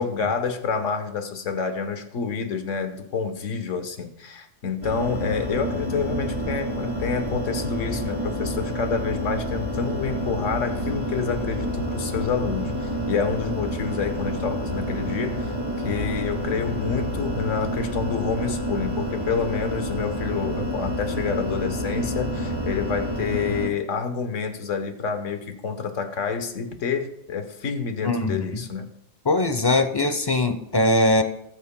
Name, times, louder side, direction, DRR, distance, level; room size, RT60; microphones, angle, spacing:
voice 1, 0.0-15.5 15.8-28.9, left 5 dB, 85° left, 8 dB, 1.4 m, -28 dB
sound 1, 4.8-23.7, equal, 20° right, 2.4 m, -29 dB
voice 2, 28.0-28.6 29.3-31.2, left 2 dB, 30° left, 8 dB, 0.5 m, -21 dB
18.5 x 8.6 x 2.2 m, 0.78 s
omnidirectional pair, 1.3 m